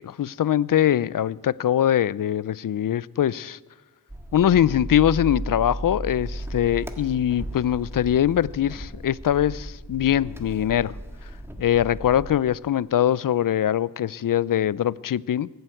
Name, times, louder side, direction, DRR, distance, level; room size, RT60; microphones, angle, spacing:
voice 1, 0.0-3.6 4.3-10.9 11.6-15.5, left 10 dB, 60° left, 21 dB, 0.5 m, -22 dB
sound 1, 4.1-12.4, right 1 dB, 5° right, 1.6 m, -35 dB
20.0 x 8.0 x 9.0 m, 1.2 s
wide cardioid pair, 85°, 36 cm